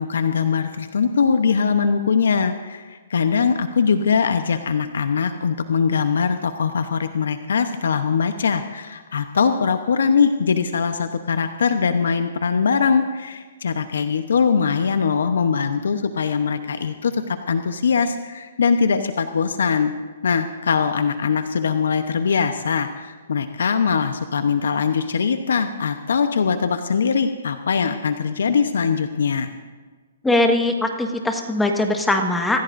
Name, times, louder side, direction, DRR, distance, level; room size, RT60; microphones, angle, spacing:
voice 1, 0.0-19.9 20.2-29.5, left 6 dB, 80° left, 9 dB, 0.9 m, -21 dB
voice 2, 30.2-32.6, left 2 dB, 5° left, 3 dB, 1.5 m, -20 dB
25.5 x 15.5 x 2.6 m, 1.4 s
hypercardioid pair, 150°, 0 cm